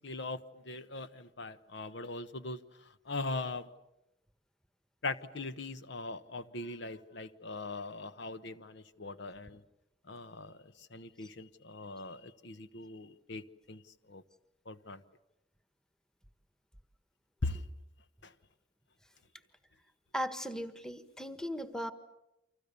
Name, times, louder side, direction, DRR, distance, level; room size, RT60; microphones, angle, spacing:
voice 1, 0.0-2.6 3.1-3.7 5.0-9.6 10.1-13.8 14.1-14.2 14.7-15.0 17.4-17.6 18.2-18.3, left 3 dB, 75° left, 12 dB, 1.1 m, -40 dB
voice 2, 20.1-21.9, equal, 5° left, 10 dB, 1.5 m, -37 dB
30.0 x 25.5 x 7.0 m, 0.89 s
head